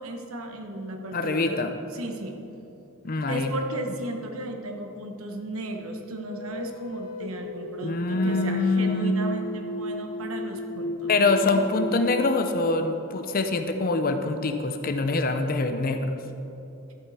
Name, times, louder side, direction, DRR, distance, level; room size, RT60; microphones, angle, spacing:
voice 1, 0.0-1.6 1.9-2.4 3.3-11.6, right 1 dB, 80° right, 4 dB, 1.1 m, -35 dB
voice 2, 1.1-1.7 3.0-3.5 7.8-9.1 11.1-16.2, left 3 dB, 45° left, 7 dB, 0.6 m, -24 dB
sound 1, 6.3-13.6, left 1 dB, 80° left, 0.6 m, -35 dB
12.5 x 8.8 x 4.2 m, 3.0 s
head